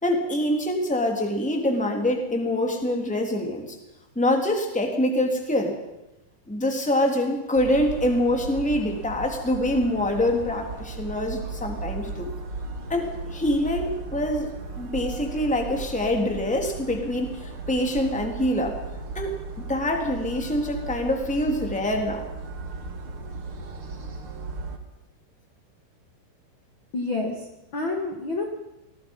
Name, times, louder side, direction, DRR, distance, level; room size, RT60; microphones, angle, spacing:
voice 1, 0.0-3.8 4.1-5.7 6.5-12.3 12.9-14.5 14.8-18.8 19.1-19.3 19.7-22.2, left 1 dB, ahead, 3 dB, 2.5 m, -25 dB
sound 1, 7.5-24.8, right 4 dB, 45° right, 2.0 m, -36 dB
voice 2, 26.9-28.4, left 2 dB, 40° left, 2 dB, 1.9 m, -29 dB
28.0 x 20.0 x 5.6 m, 0.97 s
omnidirectional pair, 5.4 m